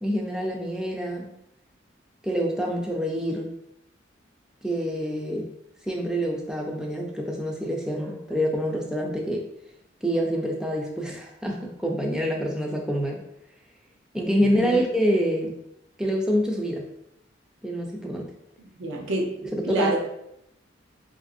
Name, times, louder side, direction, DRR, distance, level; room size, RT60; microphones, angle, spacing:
voice 1, 0.0-1.3 2.2-3.5 4.6-5.5 5.8-9.5 10.0-13.2 14.1-15.6 16.0-16.8 17.6-18.3 19.4-20.0, equal, 5° right, 0 dB, 0.3 m, -26 dB
voice 2, 14.4-14.8 18.6-19.3 19.7-20.0, right 2 dB, 85° right, 0 dB, 0.6 m, -28 dB
2.8 x 2.5 x 2.5 m, 0.79 s
head